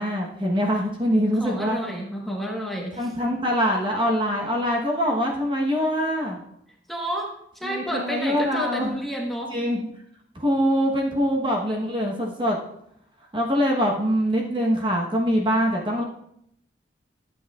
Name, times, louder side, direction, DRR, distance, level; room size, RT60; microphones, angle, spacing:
voice 1, 0.0-1.8 3.0-6.4 7.6-9.0 9.5-9.9 10.3-12.6 13.3-16.0, equal, 25° right, -1 dB, 1.1 m, -23 dB
voice 2, 1.4-3.1 6.9-9.6, equal, ahead, -1 dB, 1.2 m, -30 dB
12.5 x 8.1 x 2.4 m, 0.74 s
head